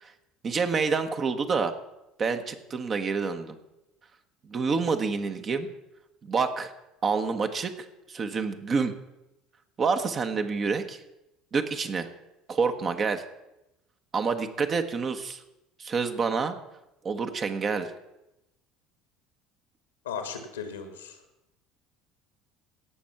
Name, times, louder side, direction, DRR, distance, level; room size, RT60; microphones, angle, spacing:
voice 1, 0.4-1.7 2.2-3.6 4.5-5.7 6.2-6.7 7.0-7.7 8.1-8.9 9.8-11.0 11.5-12.1 12.5-13.2 14.1-15.4 15.8-16.5 17.0-17.9, right 5 dB, 35° right, 7 dB, 1.2 m, -27 dB
voice 2, 20.0-21.2, left 6 dB, 80° left, 8 dB, 1.6 m, -36 dB
17.0 x 6.3 x 5.9 m, 0.92 s
figure-of-eight pair, 65°, 0 cm